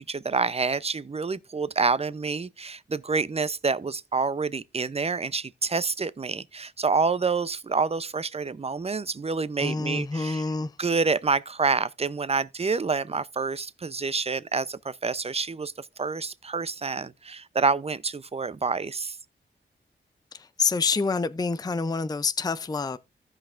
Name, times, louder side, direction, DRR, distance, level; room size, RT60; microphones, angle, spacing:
voice 1, 0.0-10.4 10.8-19.2, right 4 dB, 30° right, 0.6 m, -28 dB
voice 2, 9.6-10.8 20.3-23.0, left 4 dB, 20° left, 0.5 m, -27 dB
15.5 x 5.5 x 2.5 m
cardioid pair, 55°, 20 cm